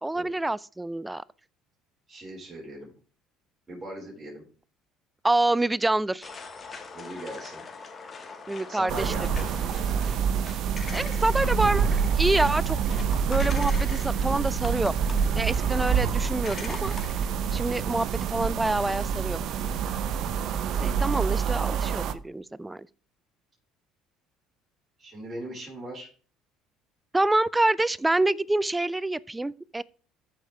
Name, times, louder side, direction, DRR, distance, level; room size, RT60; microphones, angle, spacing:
voice 1, 0.0-1.2 5.2-6.3 8.5-9.1 10.9-12.8 13.3-14.9 15.3-16.9 17.5-19.4 20.8-22.9 27.1-29.8, right 2 dB, 10° right, 0.4 m, -26 dB
voice 2, 2.1-2.9 3.7-4.5 6.9-7.6 8.7-9.5 25.0-26.1, right 1 dB, 25° right, 4.9 m, -39 dB
sound 1, 6.2-17.3, left 4 dB, 35° left, 1.7 m, -43 dB
sound 2, 8.9-22.1, right 7 dB, 60° right, 0.6 m, -27 dB
14.0 x 5.2 x 3.4 m
supercardioid pair, 75°, 0 cm